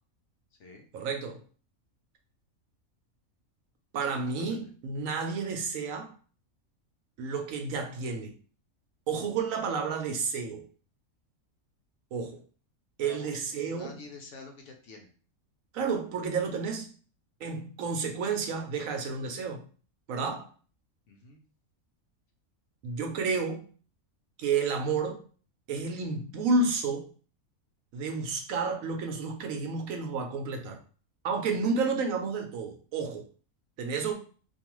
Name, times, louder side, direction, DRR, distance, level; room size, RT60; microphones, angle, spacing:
voice 1, 0.9-1.4 3.9-6.1 7.2-8.4 9.1-10.7 12.1-12.4 13.0-14.0 15.7-16.9 17.4-19.6 20.1-20.5 22.8-23.7 24.4-25.2 25.7-27.1 27.9-30.8 31.2-33.2 33.8-34.1, right 4 dB, 75° right, 1.0 m, -31 dB
voice 2, 4.1-4.7 13.0-15.1 21.1-21.4, left 4 dB, 65° left, 0.8 m, -48 dB
2.6 x 2.3 x 2.9 m
omnidirectional pair, 1.5 m